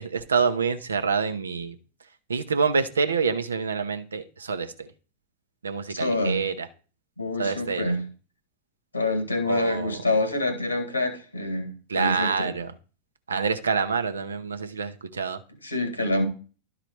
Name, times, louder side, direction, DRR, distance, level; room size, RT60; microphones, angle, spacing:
voice 1, 0.0-1.8 2.3-4.9 5.6-6.7 7.4-7.9 9.4-10.0 11.9-12.7 13.3-15.4, right 5 dB, 75° right, 9 dB, 0.8 m, -27 dB
voice 2, 5.9-6.4 7.2-8.0 8.9-12.5 15.6-16.3, left 2 dB, 85° left, 9 dB, 1.6 m, -26 dB
11.5 x 3.9 x 4.6 m, 0.37 s
figure-of-eight pair, 90°, 0 cm